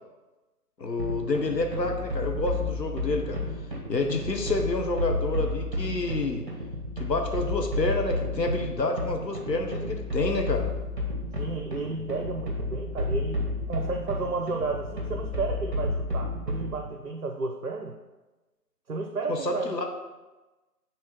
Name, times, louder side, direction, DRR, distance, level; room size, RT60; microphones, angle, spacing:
voice 1, 0.8-3.4 3.9-6.5 7.0-10.7 19.3-19.9, left 2 dB, 90° left, 3 dB, 0.9 m, -28 dB
sound 1, 1.0-16.9, left 1 dB, 30° right, 1.3 m, -31 dB
voice 2, 11.4-18.0 18.9-19.8, right 3 dB, 60° right, 4 dB, 0.6 m, -33 dB
7.7 x 3.6 x 4.2 m, 1.1 s
figure-of-eight pair, 160°, 48 cm